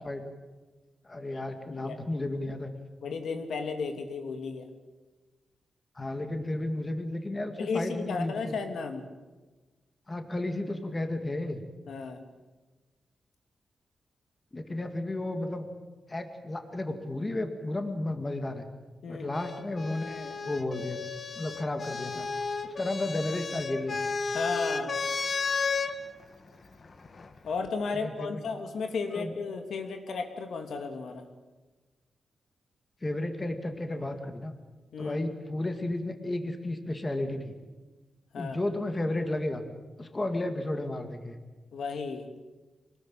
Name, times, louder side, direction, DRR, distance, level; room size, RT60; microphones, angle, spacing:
voice 1, 1.0-2.7 5.9-8.6 10.1-11.6 14.5-15.7 16.1-18.7 19.1-21.0 21.4-22.3 22.6-24.0 27.9-28.4 29.1-29.3 33.0-34.6 35.0-37.6 38.4-39.6 40.0-41.4, left 1 dB, 20° left, 6 dB, 2.2 m, -33 dB
voice 2, 3.0-4.7 7.6-9.0 11.9-12.2 19.0-19.3 24.3-24.9 27.4-31.3 34.9-35.2 38.3-38.6 41.7-42.3, left 4 dB, 75° left, 5 dB, 2.9 m, -34 dB
sound 1, 19.3-25.9 27.1-27.7, left 4 dB, 40° left, 1.8 m, -33 dB
24.5 x 19.5 x 8.7 m, 1.2 s
wide cardioid pair, 145°, 0 cm